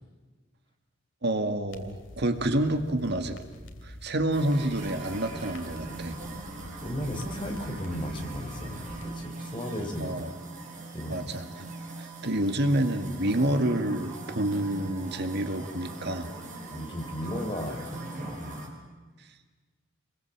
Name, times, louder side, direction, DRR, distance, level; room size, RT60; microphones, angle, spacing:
voice 1, 1.2-3.4 3.8-6.2 10.0-10.3 11.1-11.4 12.0-16.3, right 1 dB, 60° right, 7 dB, 2.0 m, -28 dB
sound 1, 1.7-9.1, left 1 dB, 75° left, 2.7 m, -46 dB
sound 2, 4.3-18.7, right 2 dB, 40° right, 6.9 m, -41 dB
voice 2, 6.8-10.2 10.9-11.3 16.7-18.7, equal, 25° left, 2 dB, 4.5 m, -35 dB
28.5 x 22.5 x 7.4 m, 1.3 s
head